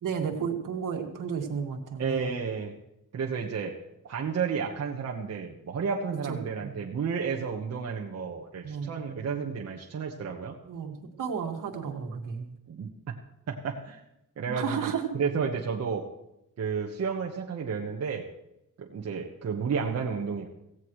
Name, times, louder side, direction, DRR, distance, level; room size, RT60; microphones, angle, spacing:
voice 1, 0.0-2.3 6.3-6.4 6.6-6.8 8.6-9.2 10.7-12.5 14.5-15.0, right 6 dB, 70° right, 4 dB, 2.0 m, -33 dB
voice 2, 2.0-2.8 3.1-10.5 12.7-12.9 13.5-14.0 14.4-16.0 16.6-18.3 18.8-20.5, right 6 dB, 50° right, -1 dB, 1.3 m, -32 dB
17.0 x 16.5 x 3.2 m, 0.87 s
wide cardioid pair, 175°, 33 cm